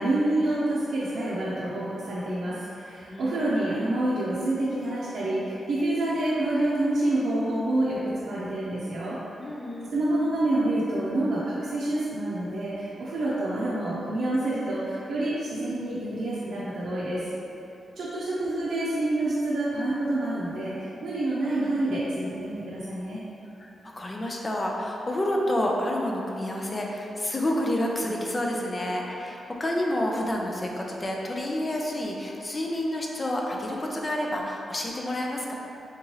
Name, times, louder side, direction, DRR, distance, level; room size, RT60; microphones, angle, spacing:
voice 1, 0.0-9.2 9.9-17.2 18.0-23.2, right 1 dB, 75° right, -9 dB, 0.6 m, -27 dB
voice 2, 3.1-3.6 9.4-9.9 23.6-23.7 24.0-35.5, left 1 dB, 25° left, -1 dB, 0.4 m, -29 dB
3.6 x 2.9 x 3.0 m, 2.8 s
cardioid pair, 105°, 0 cm